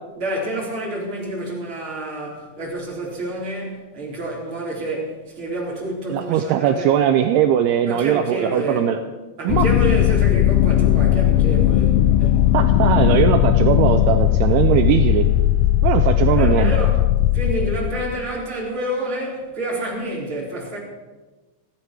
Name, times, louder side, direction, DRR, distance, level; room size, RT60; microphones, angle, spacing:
voice 1, 0.2-6.9 7.8-8.9 9.4-12.5 16.3-17.0 17.3-20.8, right 1 dB, 30° right, -4 dB, 5.0 m, -28 dB
voice 2, 6.1-9.0 9.4-9.7 12.5-15.3 15.8-16.7, right 10 dB, 80° right, 7 dB, 2.4 m, -19 dB
sound 1, 9.5-18.2, left 12 dB, 85° left, 3.0 m, -17 dB
29.0 x 9.9 x 4.7 m, 1.2 s
omnidirectional pair, 5.3 m